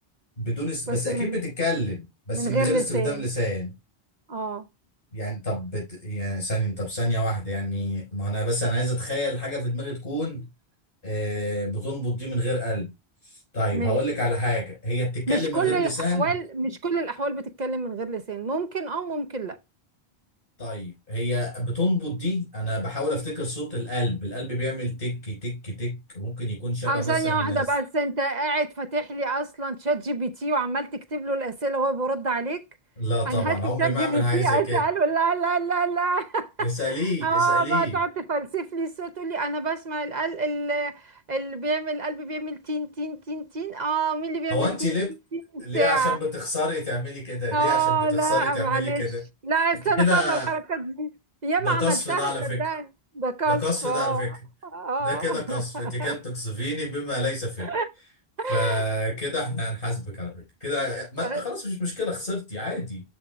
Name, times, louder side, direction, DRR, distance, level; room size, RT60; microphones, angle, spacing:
voice 1, 0.4-3.7 5.1-10.4 11.0-12.9 13.5-16.3 20.6-27.6 33.0-34.8 36.6-38.0 44.5-45.1 45.6-49.2 50.0-50.5 51.6-52.6 53.5-54.3 55.0-57.7 58.5-60.3 60.6-63.0, left 1 dB, 55° left, 5.1 m, -28 dB
voice 2, 0.9-1.4 2.3-3.3 4.3-4.7 13.7-14.0 15.3-19.6 26.9-32.6 33.3-36.7 37.2-44.9 45.3-46.2 47.5-49.0 49.4-51.1 51.4-52.9 53.1-54.2 54.7-56.1 57.6-57.9 58.4-58.8 61.2-61.4 62.7-62.8, right 3 dB, 45° right, 0.8 m, -27 dB
12.5 x 4.5 x 2.3 m
omnidirectional pair, 1.1 m